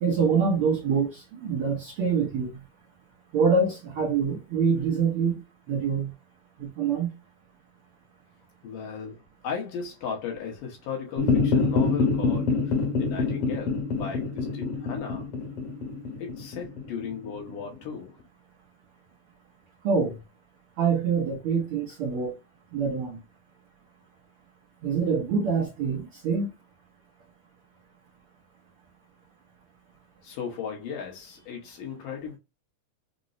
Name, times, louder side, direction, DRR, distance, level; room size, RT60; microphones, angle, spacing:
voice 1, 0.0-2.6 3.3-5.4 5.7-6.1 6.6-7.1 19.8-20.2 20.8-22.4 22.7-23.2 24.8-26.5, right 5 dB, 85° right, 1.2 m, -25 dB
voice 2, 8.6-15.3 16.2-18.2 30.2-32.4, left 6 dB, 90° left, 2.7 m, -36 dB
sound 1, 11.2-17.7, left 4 dB, 60° left, 1.6 m, -26 dB
5.8 x 2.0 x 2.5 m
omnidirectional pair, 3.6 m